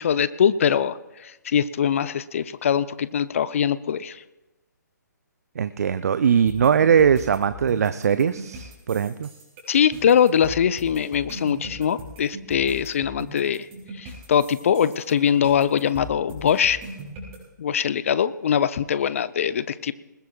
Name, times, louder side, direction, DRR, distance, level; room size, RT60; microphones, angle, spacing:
voice 1, 0.0-4.2 9.7-13.7 14.0-16.8 17.6-19.9, left 8 dB, 45° left, 16 dB, 0.5 m, -22 dB
voice 2, 5.6-9.3, right 7 dB, 50° right, 13 dB, 0.5 m, -20 dB
sound 1, 6.5-17.4, equal, 20° right, 6.4 m, -40 dB
20.5 x 20.5 x 2.4 m, 1.0 s
figure-of-eight pair, 135°, 10 cm